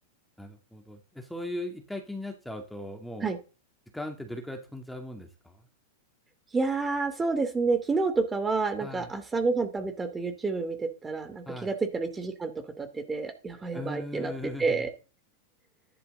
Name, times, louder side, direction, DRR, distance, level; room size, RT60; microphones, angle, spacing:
voice 1, 0.4-3.3 3.9-5.6 8.8-9.1 11.5-11.7 13.7-14.9, left 1 dB, ahead, 3 dB, 2.3 m, -38 dB
voice 2, 6.5-12.5 12.8-14.3 14.6-14.9, right 4 dB, 15° right, 8 dB, 2.5 m, -29 dB
13.0 x 11.5 x 3.9 m, 0.33 s
hypercardioid pair, 135°, 0 cm